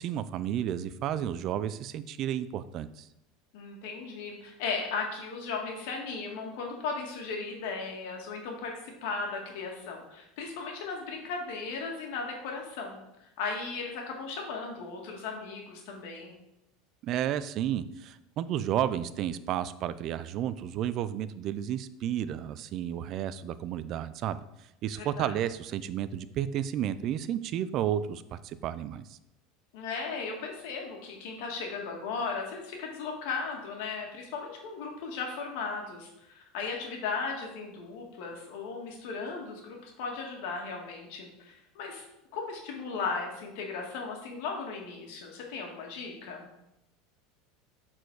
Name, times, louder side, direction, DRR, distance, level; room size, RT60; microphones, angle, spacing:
voice 1, 0.0-3.1 17.0-24.4 24.8-29.2, right 10 dB, 50° right, 14 dB, 0.4 m, -32 dB
voice 2, 3.5-16.3 25.0-25.3 29.7-42.0 42.3-46.5, left 4 dB, 70° left, 1 dB, 1.8 m, -36 dB
6.7 x 4.3 x 4.7 m, 0.86 s
supercardioid pair, 120°, 0 cm